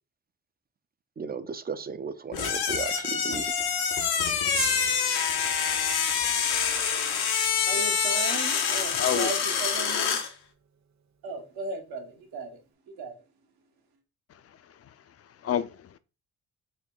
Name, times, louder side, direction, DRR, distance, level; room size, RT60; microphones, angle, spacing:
voice 1, 1.2-3.5, right 5 dB, 25° right, 0.3 m, -35 dB
sound 1, 2.3-10.3, left 6 dB, 85° left, 0.8 m, -26 dB
Gong, 4.6-10.9 11.7-11.8, right 7 dB, 50° right, 0.7 m, -43 dB
voice 2, 7.1-7.7 8.9-9.3 14.3-16.0, left 9 dB, 40° left, 0.4 m, -32 dB
voice 3, 7.7-10.2 11.2-12.6 13.0-13.1, right 3 dB, 75° right, 1.1 m, -36 dB
3.6 x 2.2 x 3.7 m
supercardioid pair, 65°, 37 cm